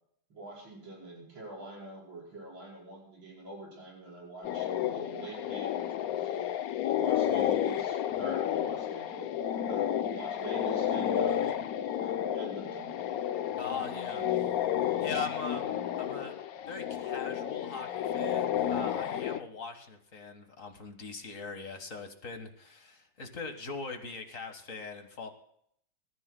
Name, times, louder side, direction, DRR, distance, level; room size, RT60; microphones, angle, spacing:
voice 1, 0.3-6.5 7.0-9.3 9.7-11.5 12.0-12.9 14.1-14.4, right 2 dB, 90° right, -5 dB, 6.3 m, -45 dB
sound 1, 4.4-19.4, left 10 dB, 65° left, 1.0 m, -31 dB
voice 2, 13.6-14.2 15.0-16.3 16.7-25.3, left 4 dB, 45° left, 6 dB, 1.9 m, -41 dB
26.5 x 14.5 x 2.2 m, 0.69 s
omnidirectional pair, 2.0 m